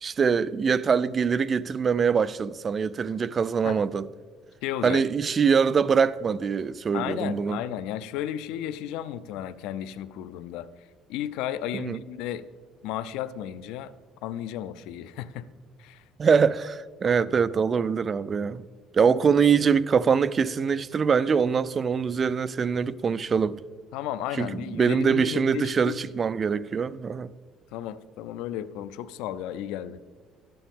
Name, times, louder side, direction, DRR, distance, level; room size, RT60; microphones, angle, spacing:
voice 1, 0.0-4.1 4.8-7.6 11.7-12.0 16.2-18.7 18.9-23.6 24.4-27.3, right 6 dB, 35° right, 0.3 m, -23 dB
voice 2, 4.6-5.0 6.9-12.5 12.8-13.9 14.2-15.5 15.8-16.0 23.9-26.0 27.7-30.0, left 11 dB, 90° left, 0.4 m, -34 dB
12.0 x 9.9 x 3.6 m
cardioid pair, 115°, 0 cm